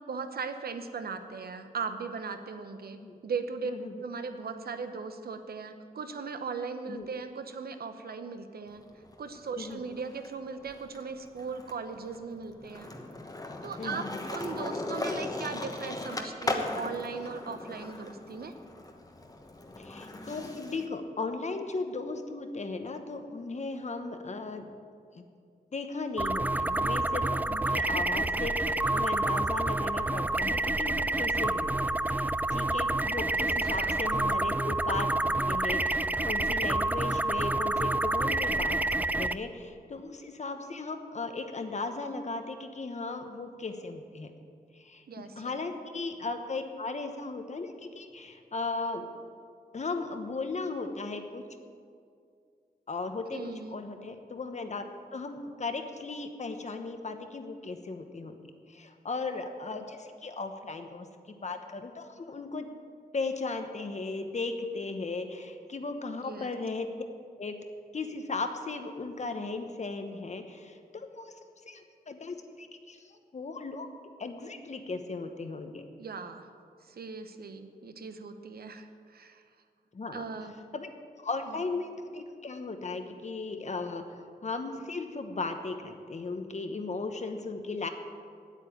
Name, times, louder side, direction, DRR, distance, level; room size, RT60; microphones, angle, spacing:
voice 1, 0.1-3.7 4.0-8.8 9.2-12.9 13.6-18.5 33.6-34.0 45.1-45.6 53.3-53.8 66.2-66.5 76.0-76.5 76.9-79.4 80.1-80.5 81.5-81.6, right 5 dB, 80° right, 8 dB, 0.9 m, -38 dB
voice 2, 3.6-4.0 6.9-7.1 9.6-9.8 13.8-14.3 19.8-24.7 25.1-25.2 25.7-44.3 44.7-45.0 45.4-49.1 49.7-51.4 52.9-54.8 55.1-58.4 58.7-62.7 63.1-66.9 67.4-67.5 67.9-71.3 71.7-73.9 74.2-75.8 79.9-80.2 80.7-80.9 81.2-84.0 84.4-87.9, left 3 dB, 45° left, 6 dB, 1.0 m, -36 dB
Skateboard, 8.7-10.3 10.6-20.9, left 2 dB, 25° left, 1.1 m, -38 dB
sound 1, 26.2-39.3, right 2 dB, 10° right, 0.3 m, -28 dB
9.1 x 8.4 x 9.1 m, 2.3 s
wide cardioid pair, 115°, 16 cm